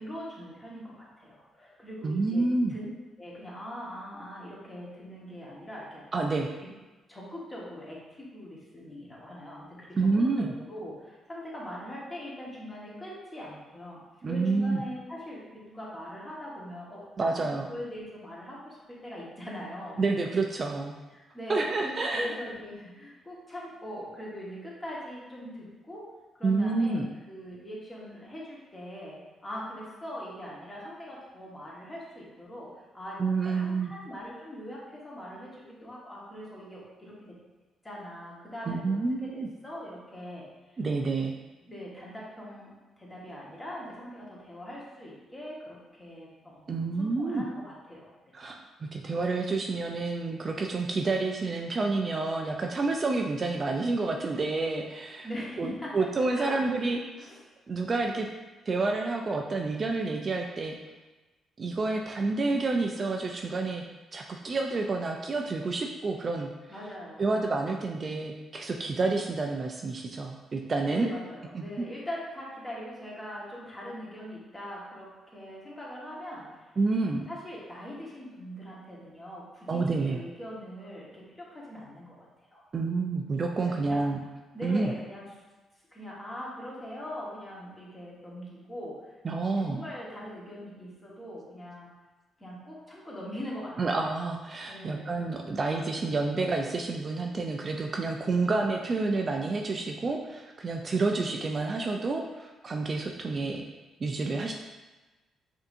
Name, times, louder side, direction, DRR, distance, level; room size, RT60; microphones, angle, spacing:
voice 1, 0.0-2.9 3.2-6.2 6.6-6.7 7.1-14.0 14.3-20.0 21.1-27.0 27.3-37.4 37.8-40.5 41.6-42.7 43.0-48.3 55.2-56.9 57.2-57.4 66.7-67.4 70.9-76.6 77.3-82.2 82.4-82.6 83.6-84.0 84.5-85.3 85.9-89.2 89.6-91.9 92.4-94.0 94.7-95.1, equal, 20° left, -6 dB, 1.3 m, -41 dB
voice 2, 2.0-2.7 6.1-6.5 10.0-10.5 14.2-14.8 17.2-17.7 20.0-20.9 21.5-22.3 26.4-27.1 33.2-33.9 38.7-39.5 40.8-41.3 46.7-47.4 48.3-55.3 55.6-57.3 57.7-58.3 58.7-60.8 61.6-63.8 64.1-66.5 67.2-71.1 71.5-71.6 76.8-77.3 79.7-80.2 82.7-84.2 84.6-84.9 89.2-89.8 93.8-103.7 104.0-104.5, right 3 dB, 35° right, 1 dB, 0.4 m, -29 dB
5.3 x 2.7 x 2.6 m, 1.2 s
cardioid pair, 90°, 0 cm